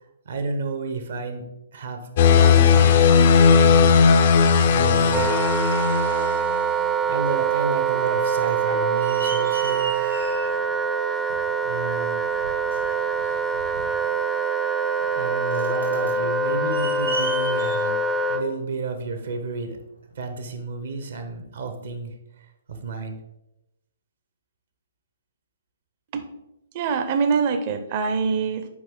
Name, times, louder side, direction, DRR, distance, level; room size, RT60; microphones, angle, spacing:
voice 1, 0.2-1.4 1.7-4.1 4.7-5.3 7.1-10.0 11.6-12.2 15.1-19.8 20.2-22.1 22.7-23.2, right 4 dB, 60° right, 6 dB, 1.0 m, -31 dB
sound 1, 2.2-6.6, left 6 dB, 45° left, 0.5 m, -16 dB
sound 2, 4.8-6.0 6.6-6.8 7.0-7.6 7.9-19.3 20.1-20.2, right 1 dB, 80° right, 2.5 m, -38 dB
Wind instrument woodwind instrument, 5.1-18.5, right 4 dB, 10° right, 0.4 m, -24 dB
voice 2, 26.7-28.7, right 5 dB, 40° right, 8 dB, 0.7 m, -24 dB
6.2 x 5.0 x 3.8 m, 0.89 s
figure-of-eight pair, 120°, 0 cm